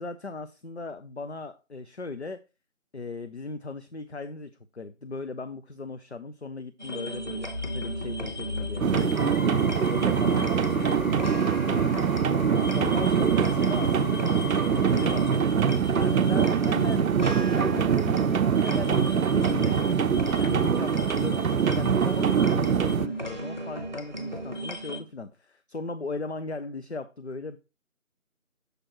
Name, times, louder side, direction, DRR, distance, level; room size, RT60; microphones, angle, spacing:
voice 1, 0.0-2.4 2.9-11.9 12.7-20.0 20.4-27.6, left 3 dB, 55° left, 0.5 m, -38 dB
sound 1, 6.8-25.0, right 1 dB, 35° right, 0.8 m, -35 dB
sound 2, 8.8-23.1, right 7 dB, 80° right, 0.6 m, -24 dB
sound 3, 9.1-15.4, left 4 dB, 80° left, 1.0 m, -40 dB
6.7 x 6.5 x 2.9 m
figure-of-eight pair, 175°, 41 cm